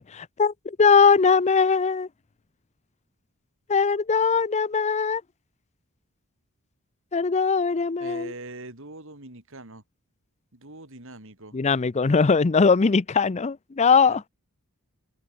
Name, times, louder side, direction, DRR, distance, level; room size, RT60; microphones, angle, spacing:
voice 1, 0.0-2.1 3.7-5.2 7.1-8.3 11.5-14.2, left 5 dB, 30° left, 0.5 m, -20 dB
voice 2, 8.0-9.8 10.5-11.6 14.1-14.2, right 2 dB, 60° right, 4.6 m, -42 dB
head